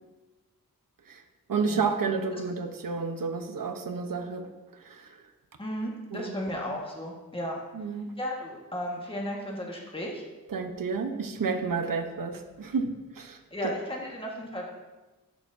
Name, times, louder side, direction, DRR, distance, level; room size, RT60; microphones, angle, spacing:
voice 1, 1.5-5.2 6.1-6.3 7.7-8.1 10.5-13.4, right 5 dB, 65° right, 5 dB, 0.9 m, -31 dB
voice 2, 5.6-7.6 8.2-10.2 13.5-14.7, equal, 15° left, -2 dB, 1.5 m, -34 dB
13.0 x 6.5 x 2.7 m, 1.1 s
wide cardioid pair, 95°, 36 cm